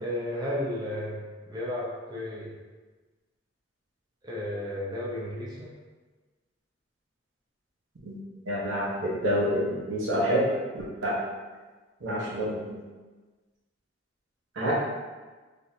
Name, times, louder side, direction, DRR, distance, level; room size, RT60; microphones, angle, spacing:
voice 1, 0.0-2.5 4.2-5.7, left 1 dB, 20° right, -6 dB, 0.5 m, -33 dB
voice 2, 8.5-10.5 10.7-11.2 12.0-12.7 14.6-14.7, equal, 80° right, -5 dB, 0.8 m, -28 dB
3.5 x 2.5 x 2.7 m, 1.3 s
head